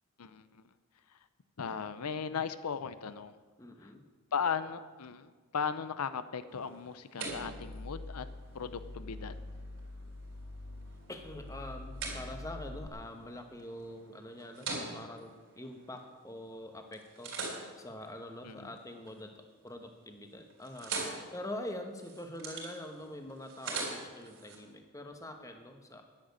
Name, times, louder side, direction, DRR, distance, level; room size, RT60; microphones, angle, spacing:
voice 1, 0.2-0.6 1.6-3.4 3.8-3.9 4.3-8.3 8.5-9.3 18.4-18.7, left 6 dB, 90° left, 12 dB, 0.6 m, -37 dB
voice 2, 3.6-4.1 11.1-17.3 17.8-20.9 21.3-26.0, left 1 dB, 15° left, 5 dB, 1.1 m, -44 dB
sound 1, 6.5-16.5 16.9-19.2 19.6-20.0 20.3-24.6, right 3 dB, 60° right, 3.8 m, -44 dB
sound 2, 7.3-12.9, left 2 dB, 55° left, 0.9 m, -45 dB
10.5 x 7.7 x 9.5 m, 1.4 s
head